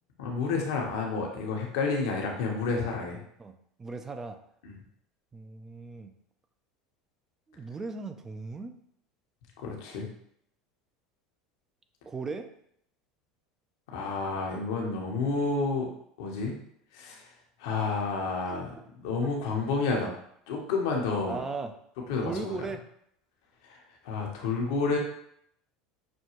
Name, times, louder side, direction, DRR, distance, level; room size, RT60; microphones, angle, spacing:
voice 1, 0.2-3.2 4.6-4.7 9.6-10.1 13.9-15.9 16.2-16.6 16.9-17.3 17.6-18.7 19.0-20.1 20.5-21.4 22.1-22.6 23.6-25.0, left 4 dB, 75° left, 0 dB, 1.0 m, -30 dB
voice 2, 3.8-4.4 5.3-6.1 7.5-8.7 12.1-12.5 18.5-18.6 20.9-21.7 22.2-22.8, right 4 dB, 20° right, 7 dB, 0.5 m, -37 dB
6.1 x 2.3 x 3.0 m, 0.70 s
hypercardioid pair, 95°, 2 cm